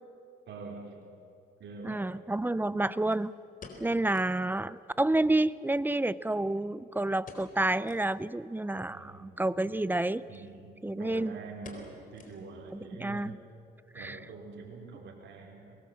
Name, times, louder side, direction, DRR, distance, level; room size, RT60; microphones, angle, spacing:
voice 1, 0.5-1.0 1.6-2.1 8.9-10.0 10.3-13.4 13.9-15.8, right 4 dB, 65° right, -1 dB, 4.1 m, -46 dB
sound 1, 1.0-1.1 3.1-4.5 4.8-4.9 5.2-5.3 5.9-6.8 7.2-7.6 7.8-8.1 8.6-8.7 9.7-9.9 10.3-10.5 10.7-11.1 11.6-12.7 13.0-13.1 13.7-14.0 14.3-14.4, left 3 dB, 45° left, 4.1 m, -51 dB
voice 2, 1.8-3.3 3.8-10.2 10.8-11.4 12.7-13.4 14.0-14.2, right 2 dB, 10° right, 17 dB, 0.6 m, -29 dB
23.5 x 20.5 x 7.6 m, 2.5 s
cardioid pair, 90°, 20 cm